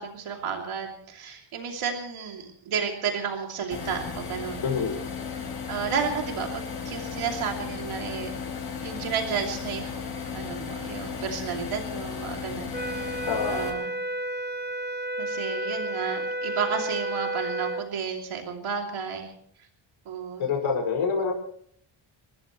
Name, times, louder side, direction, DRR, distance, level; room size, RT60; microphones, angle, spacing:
voice 1, 0.0-4.6 5.7-8.3 8.8-13.2 13.5-13.9 15.2-19.3 20.1-20.4, right 6 dB, 85° right, 1 dB, 2.9 m, -32 dB
sound 1, 3.7-13.7, left 6 dB, 50° left, 4.6 m, -35 dB
voice 2, 4.6-5.0 13.3-13.7 20.4-21.3, left 5 dB, 80° left, 2 dB, 5.7 m, -26 dB
sound 2, 12.7-17.9, right 1 dB, 20° right, 1.1 m, -31 dB
29.5 x 14.0 x 3.1 m, 0.65 s
wide cardioid pair, 165°, 48 cm